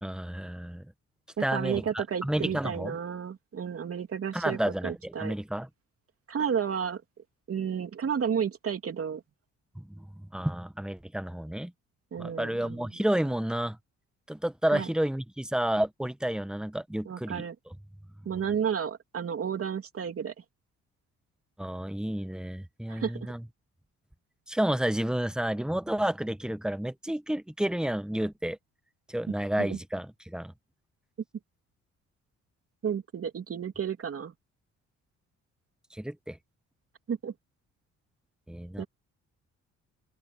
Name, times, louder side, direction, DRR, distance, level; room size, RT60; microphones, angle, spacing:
voice 1, 0.0-0.9 1.4-2.9 4.3-5.7 9.7-11.7 12.2-13.8 14.3-17.4 21.6-23.4 24.5-28.6 29.1-30.5 35.9-36.4 38.5-38.8, right 1 dB, 5° right, 1.1 m, -31 dB
voice 2, 1.4-5.3 6.3-7.0 7.5-9.2 12.1-12.9 14.7-14.9 17.0-17.5 18.2-20.3 22.9-23.1 29.6-29.8 32.8-34.3 37.1-37.3 38.8-38.9, right 7 dB, 50° right, 3.0 m, -32 dB
open air
cardioid pair, 90°, 30 cm